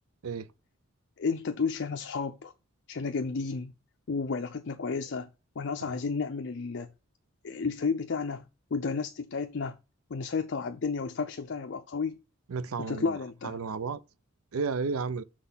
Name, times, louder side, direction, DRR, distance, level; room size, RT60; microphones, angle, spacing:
voice 1, 1.2-2.5 2.9-3.7 4.1-5.3 5.6-6.9 7.4-8.4 8.7-9.7 10.1-12.2 12.8-13.6, left 4 dB, 55° left, 0.5 m, -32 dB
voice 2, 12.5-13.2 13.4-14.0 14.5-15.2, right 4 dB, 80° right, 0.5 m, -32 dB
6.5 x 4.1 x 5.4 m
head